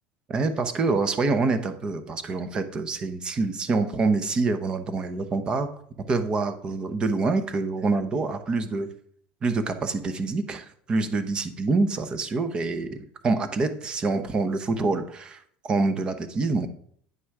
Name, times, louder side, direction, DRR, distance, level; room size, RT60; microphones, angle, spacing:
voice 1, 0.3-5.7 6.1-8.9 9.4-16.7, right 3 dB, 25° right, 9 dB, 0.8 m, -26 dB
9.5 x 6.1 x 4.8 m, 0.63 s
cardioid pair, 145°, 4 cm